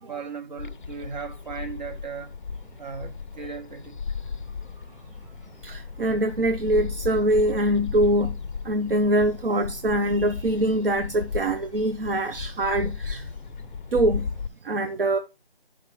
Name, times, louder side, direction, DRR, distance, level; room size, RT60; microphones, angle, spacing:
voice 1, 0.0-2.4 2.8-4.0 4.5-5.5 12.3-12.4 13.1-13.3, right 5 dB, 45° right, 1.4 m, -38 dB
sound 1, 0.6-14.5, left 5 dB, 50° left, 0.4 m, -35 dB
voice 2, 5.6-8.3 8.6-13.2 13.9-14.3 14.6-15.2, right 1 dB, 60° right, 0.7 m, -23 dB
5.5 x 5.3 x 5.6 m
figure-of-eight pair, 160°, 32 cm